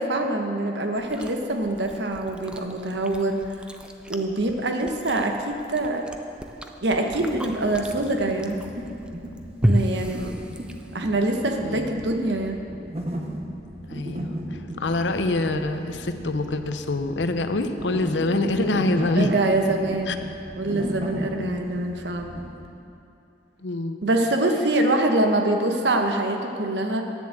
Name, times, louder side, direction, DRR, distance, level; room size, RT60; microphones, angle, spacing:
voice 1, 0.0-3.5 4.1-6.1 6.8-8.6 9.6-10.4 10.9-12.6 19.2-22.3 24.0-27.0, right 2 dB, 80° right, 4 dB, 1.0 m, -24 dB
Chewing mastication, 1.0-11.1, equal, 5° right, 0.4 m, -32 dB
sound 1, 7.1-22.7, equal, 35° right, 0.9 m, -36 dB
voice 2, 11.6-12.0 13.9-19.3 20.1-20.2 21.4-21.6 23.6-24.0, left 2 dB, 90° left, 8 dB, 0.7 m, -26 dB
10.0 x 7.0 x 7.8 m, 2.8 s
head